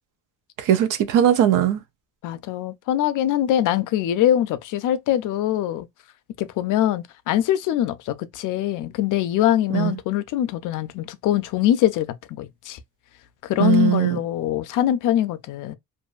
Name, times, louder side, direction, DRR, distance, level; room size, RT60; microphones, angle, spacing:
voice 1, 0.6-1.8 9.7-9.9 13.6-14.2, right 11 dB, 80° right, 0.6 m, -19 dB
voice 2, 2.2-5.9 6.4-12.8 13.4-15.7, left 11 dB, 85° left, 0.5 m, -23 dB
2.5 x 2.5 x 2.3 m
cardioid pair, 140°, 30 cm